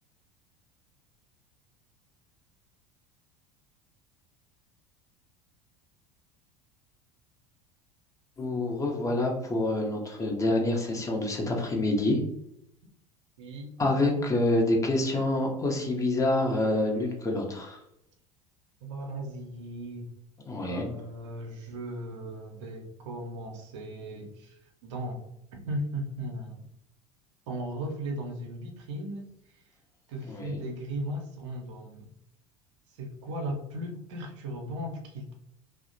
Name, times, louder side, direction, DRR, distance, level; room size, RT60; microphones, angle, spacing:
voice 1, 8.4-12.2 13.8-17.8 20.5-20.9 30.2-30.6, left 2 dB, 20° left, 0 dB, 0.6 m, -27 dB
voice 2, 13.4-13.7 18.8-20.1 20.6-25.2 25.5-26.6 27.5-29.2 29.5-29.6 30.1-32.1 33.0-35.3, right 1 dB, 60° right, 2 dB, 0.6 m, -37 dB
2.7 x 2.1 x 2.5 m, 0.78 s
figure-of-eight pair, 70°, 17 cm